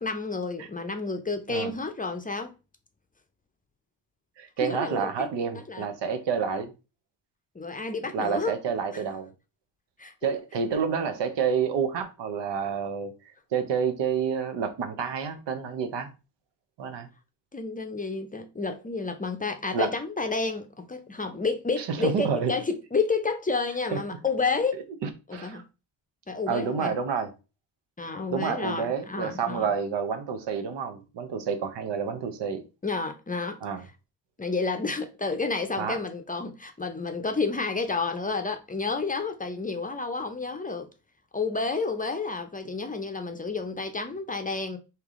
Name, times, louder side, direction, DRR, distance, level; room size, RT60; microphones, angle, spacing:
voice 1, 0.0-2.5 4.6-5.3 5.7-5.9 7.5-9.0 10.0-10.4 17.5-24.8 25.3-25.6 26.3-26.9 28.0-29.7 32.8-33.6 34.4-40.9 41.3-44.8, left 4 dB, 20° left, 0.6 m, -30 dB
voice 2, 4.4-6.7 8.1-9.3 10.2-13.1 13.5-16.1 16.8-17.1 19.7-19.9 21.8-22.5 23.9-24.0 25.0-25.6 26.5-27.3 28.3-32.6 33.6-33.8 35.8-36.0, right 6 dB, 75° right, 0.8 m, -29 dB
3.3 x 2.9 x 3.6 m
cardioid pair, 80°, 43 cm